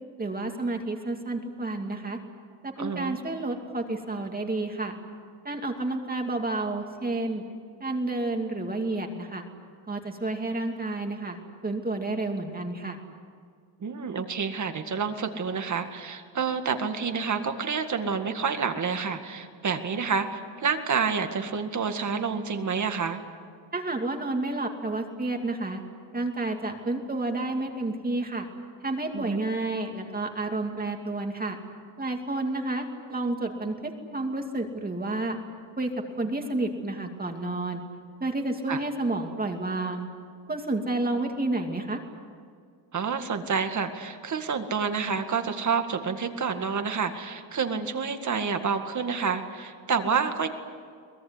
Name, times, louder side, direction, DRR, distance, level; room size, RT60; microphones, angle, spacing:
voice 1, 0.2-2.2 2.6-5.0 5.4-7.4 7.8-9.4 9.9-11.4 11.6-13.0 23.7-25.8 26.1-28.5 28.8-31.6 32.0-35.4 35.8-35.9 36.2-37.8 38.2-40.1 40.5-42.0, right 2 dB, 20° right, 3 dB, 2.6 m, -30 dB
voice 2, 2.8-3.2 13.8-23.2 29.1-29.4 38.7-38.8 42.9-50.5, right 5 dB, 40° right, 7 dB, 2.0 m, -28 dB
23.5 x 21.0 x 9.7 m, 2.1 s
cardioid pair, 145°, 45 cm